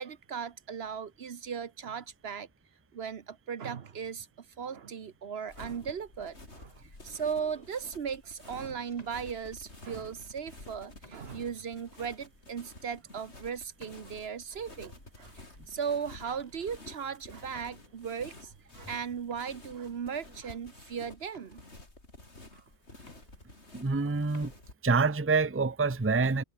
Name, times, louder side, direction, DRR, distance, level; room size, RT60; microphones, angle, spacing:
voice 1, 0.0-2.5 2.9-21.6 22.5-22.6, right 7 dB, 60° right, 1.2 m, -37 dB
sound 1, 5.5-24.7, left 2 dB, 70° left, 5.0 m, -51 dB
sound 2, 6.2-6.6 7.4-8.0 8.8-9.8 10.5-10.6 11.0-11.5 12.1-12.2 12.8-13.0 13.8-14.5 15.6-16.1 16.4-16.7 17.5-18.1 18.9-19.0 19.3-20.5 21.3-22.1 22.7-22.8 23.0-24.0 24.2-24.6, left 1 dB, 35° left, 4.9 m, -59 dB
voice 2, 23.7-24.5 24.8-26.4, right 4 dB, 15° right, 0.7 m, -26 dB
omnidirectional pair, 1.2 m